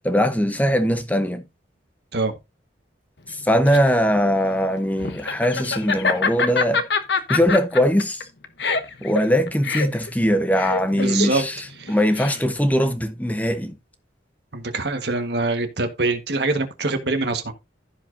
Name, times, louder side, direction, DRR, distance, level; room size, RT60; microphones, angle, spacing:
voice 1, 0.0-1.4 3.3-6.8 7.3-8.3 9.0-13.8, equal, 10° left, 0.9 m, -21 dB
Laughter, 3.3-12.7, left 4 dB, 70° left, 0.9 m, -26 dB
voice 2, 10.9-11.4 11.8-11.9 14.5-17.5, right 3 dB, 65° right, 1.5 m, -24 dB
15.5 x 5.2 x 2.6 m
head